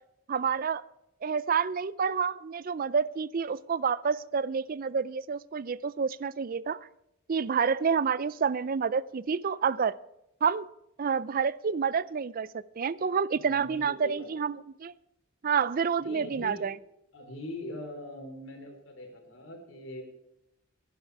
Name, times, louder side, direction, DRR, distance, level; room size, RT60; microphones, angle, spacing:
voice 1, 0.3-0.8 1.2-6.8 7.3-10.0 10.4-10.7 11.0-14.9 15.4-16.8, right 6 dB, 45° right, 19 dB, 0.4 m, -28 dB
voice 2, 13.3-14.3 16.0-16.7 17.1-20.0, left 1 dB, 70° left, 3 dB, 3.5 m, -42 dB
17.0 x 11.0 x 4.6 m, 0.84 s
head